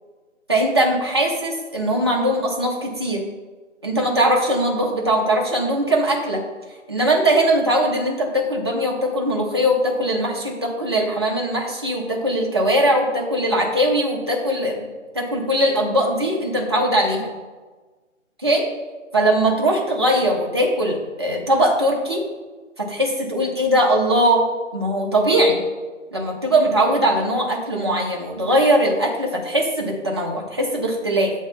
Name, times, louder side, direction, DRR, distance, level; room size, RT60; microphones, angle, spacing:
voice 1, 0.5-3.2 3.8-6.4 6.9-14.8 15.1-17.3 18.4-18.6 19.1-22.2 22.8-24.4 24.7-25.6 26.1-31.3, right 1 dB, 20° right, -2 dB, 0.6 m, -20 dB
7.8 x 3.1 x 5.2 m, 1.3 s
figure-of-eight pair, 160°, 38 cm